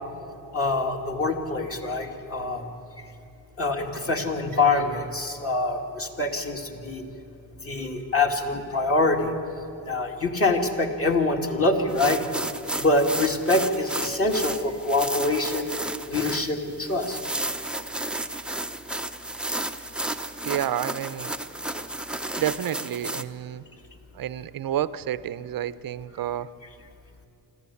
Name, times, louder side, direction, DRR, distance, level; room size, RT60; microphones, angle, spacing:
voice 1, 0.5-2.7 3.6-7.0 7.6-9.3 9.8-12.2 12.8-15.7 16.1-17.2, left 2 dB, 30° left, 2 dB, 2.5 m, -25 dB
sound 1, 11.9-23.2, right 1 dB, ahead, 0.8 m, -32 dB
voice 2, 20.4-21.4 22.4-23.6 24.1-26.5, right 11 dB, 50° right, 16 dB, 0.8 m, -30 dB
26.0 x 14.5 x 8.5 m, 2.6 s
cardioid pair, 110°, 45 cm